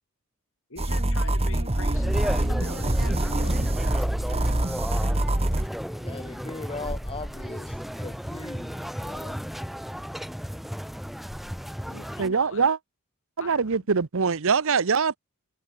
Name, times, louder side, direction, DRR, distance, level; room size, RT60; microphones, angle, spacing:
voice 1, 0.7-3.7 11.8-12.7 13.4-13.9, left 3 dB, 65° left, 7.3 m, -43 dB
sound 1, 0.8-5.7, right 1 dB, 30° right, 1.6 m, -25 dB
sound 2, 1.9-12.3, equal, ahead, 0.9 m, -34 dB
voice 2, 5.9-9.4, left 3 dB, 25° left, 1.1 m, -39 dB
voice 3, 12.2-12.8 13.4-15.2, right 5 dB, 65° right, 0.8 m, -23 dB
head